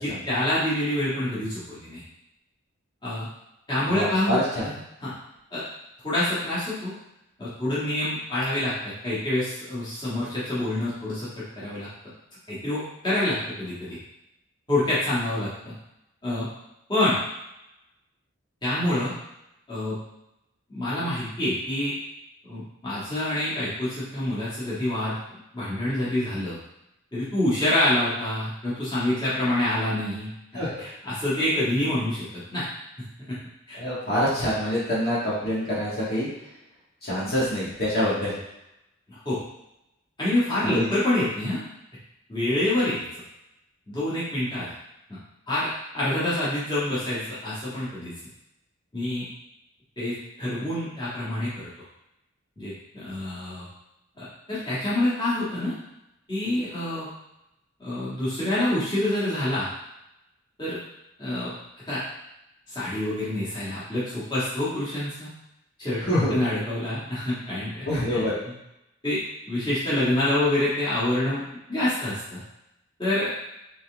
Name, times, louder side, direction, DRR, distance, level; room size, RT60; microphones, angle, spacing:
voice 1, 0.0-2.0 3.0-3.3 3.7-5.1 5.5-5.6 6.0-6.9 7.4-11.9 12.5-14.0 14.7-15.7 16.2-16.5 16.9-17.2 18.6-19.1 19.7-20.0 20.7-21.9 22.5-25.2 25.5-26.6 27.1-30.3 30.8-32.6 33.2-33.4 33.7-33.8 39.1-39.4 40.2-41.6 42.3-43.0 43.9-44.7 45.1-45.2 45.5-48.1 48.9-49.2 50.0-51.7 52.6-53.7 54.2-55.7 56.3-57.1 57.8-59.7 60.6-60.8 61.2-61.5 61.9-62.0 62.7-65.3 65.8-66.0 66.3-67.8 68.1-68.5 69.0-69.2 69.5-71.4 71.7-72.4 73.0-73.3, left 1 dB, 20° left, -11 dB, 1.6 m, -27 dB
voice 2, 3.9-4.7 30.5-30.8 33.8-36.3 37.0-38.4 40.6-40.9 66.0-66.4 67.8-68.3, equal, 50° left, -8 dB, 1.7 m, -26 dB
4.1 x 3.7 x 3.4 m, 0.88 s
head